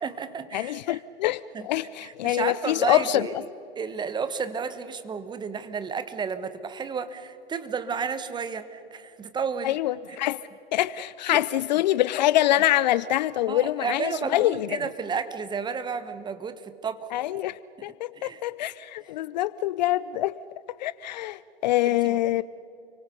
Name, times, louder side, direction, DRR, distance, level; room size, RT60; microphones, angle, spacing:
voice 1, 0.0-1.0 1.5-1.7 2.0-3.3 3.7-9.8 11.3-11.4 13.5-17.1 17.8-17.9 18.2-18.4 21.9-22.4, right 6 dB, 15° right, 11 dB, 1.2 m, -32 dB
voice 2, 0.5-3.3 9.6-10.4 10.7-14.7 17.1-20.3 20.8-22.4, left 14 dB, 45° left, 19 dB, 0.5 m, -25 dB
30.0 x 24.0 x 5.3 m, 2.8 s
hypercardioid pair, 115°, 33 cm